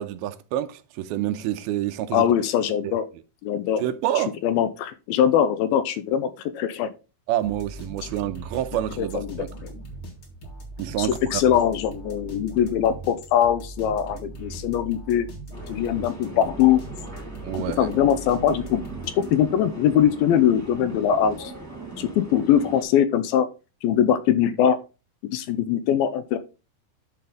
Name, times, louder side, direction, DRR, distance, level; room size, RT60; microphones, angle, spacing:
voice 1, 0.0-2.3 3.8-4.4 7.3-9.5 10.8-11.4 17.4-17.9, right 12 dB, 90° right, 2.6 m, -28 dB
voice 2, 2.1-3.1 3.4-3.8 4.2-6.9 9.0-9.7 11.0-15.3 15.7-16.8 17.5-18.8 19.2-21.5 22.0-23.5 23.8-24.8 25.3-26.4, left 9 dB, 85° left, 2.5 m, -22 dB
sound 1, 7.4-19.6, right 2 dB, 35° left, 2.4 m, -40 dB
sound 2, 15.5-22.8, right 2 dB, 5° right, 1.3 m, -39 dB
12.0 x 4.3 x 3.9 m
omnidirectional pair, 4.3 m